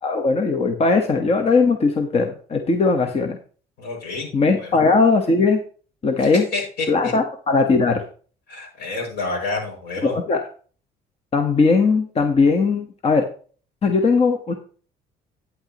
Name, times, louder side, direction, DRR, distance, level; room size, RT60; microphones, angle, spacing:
voice 1, 0.0-3.4 4.3-5.6 6.0-6.4 6.9-8.0 10.0-10.4 11.3-13.2 13.8-14.5, left 4 dB, 35° left, 4 dB, 1.2 m, -19 dB
voice 2, 3.8-4.3 4.6-4.8 6.2-7.1 8.5-10.2, left 3 dB, 75° left, -1 dB, 6.2 m, -29 dB
11.5 x 9.8 x 3.0 m, 0.42 s
cardioid pair, 110°, 17 cm